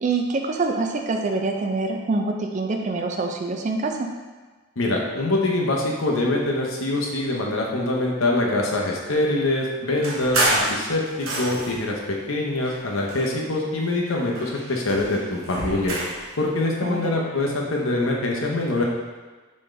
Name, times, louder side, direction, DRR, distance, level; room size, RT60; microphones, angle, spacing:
voice 1, 0.0-4.1 16.8-17.3, right 3 dB, 35° right, 3 dB, 0.4 m, -25 dB
voice 2, 4.8-12.0 12.3-15.9 16.4-18.9, left 2 dB, 70° left, -1 dB, 0.8 m, -24 dB
sound 1, 10.0-11.9 12.6-13.7 14.1-16.3, right 1 dB, 80° right, 0.9 m, -28 dB
4.2 x 3.6 x 3.2 m, 1.3 s
head